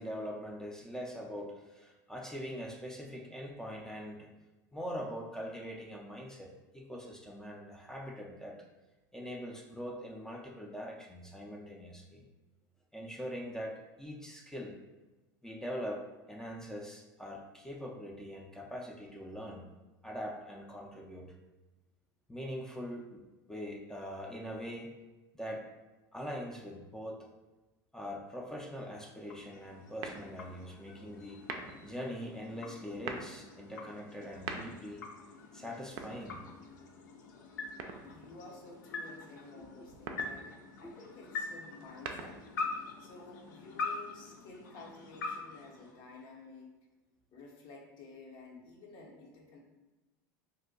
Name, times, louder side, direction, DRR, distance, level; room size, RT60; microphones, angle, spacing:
voice 1, 0.0-4.3 4.7-8.6 9.1-12.2 12.9-14.8 15.4-19.7 20.0-21.3 22.3-23.2 23.5-24.9 25.3-25.7 26.1-27.3 27.9-31.4 31.8-35.1 35.5-36.4 40.8-40.9, equal, 5° left, 0 dB, 0.4 m, -42 dB
sound 1, 28.8-46.5, left 3 dB, 85° left, 0.4 m, -44 dB
sound 2, 30.0-30.6 31.4-31.9 32.8-33.4 34.2-35.0 35.8-36.7 37.8-38.4 39.8-40.4 41.7-42.6, right 5 dB, 60° right, 0.4 m, -43 dB
voice 2, 38.0-42.4 43.0-46.7 47.3-49.6, left 3 dB, 55° left, -1 dB, 0.7 m, -52 dB
2.6 x 2.1 x 3.8 m, 1.1 s
hypercardioid pair, 95°, 10 cm